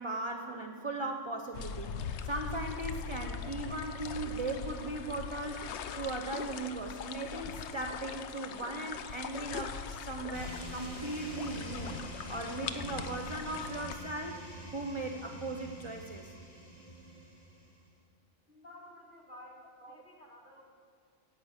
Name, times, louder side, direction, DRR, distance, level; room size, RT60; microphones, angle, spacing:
voice 1, 0.0-14.4 14.7-16.3 19.8-19.9, right 2 dB, 35° right, 4 dB, 0.6 m, -38 dB
sound 1, 1.5-14.0, left 6 dB, 70° left, 0.9 m, -41 dB
sound 2, 10.3-17.9, right 1 dB, 25° left, 2.2 m, -46 dB
voice 2, 18.5-20.6, left 1 dB, 40° left, -3 dB, 2.3 m, -53 dB
13.5 x 5.2 x 8.2 m, 2.2 s
omnidirectional pair, 1.3 m